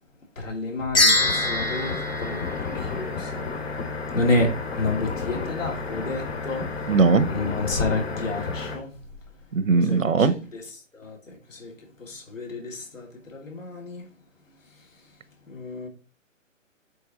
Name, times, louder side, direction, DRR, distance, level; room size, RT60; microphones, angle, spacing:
voice 1, 0.4-3.5 4.1-6.7 7.3-8.9 9.8-10.7 10.9-14.1 15.5-15.9, left 2 dB, 75° left, 2.8 m, -30 dB
sound 1, 1.0-3.4, left 2 dB, 10° left, 0.6 m, -24 dB
sound 2, 1.1-8.8, left 4 dB, 55° left, 2.6 m, -32 dB
voice 2, 6.9-7.3 9.5-10.3, right 4 dB, 80° right, 0.9 m, -19 dB
8.1 x 4.5 x 3.9 m
figure-of-eight pair, 135°, 39 cm